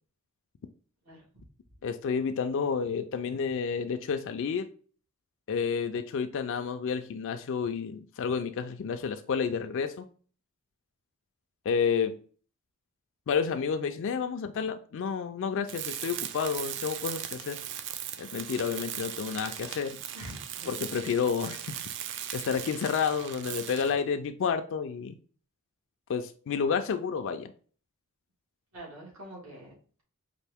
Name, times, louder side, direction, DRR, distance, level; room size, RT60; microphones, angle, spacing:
voice 1, 1.0-1.5 20.1-20.7 28.7-30.0, right 1 dB, 80° right, 1.9 m, -46 dB
voice 2, 1.8-4.7 5.5-10.1 11.7-12.2 13.3-17.6 18.2-20.0 20.7-21.8 22.3-25.2 26.1-27.5, left 6 dB, 60° left, 0.3 m, -30 dB
Tools, 15.7-24.1, right 10 dB, 55° right, 0.3 m, -38 dB
4.4 x 2.5 x 3.4 m
head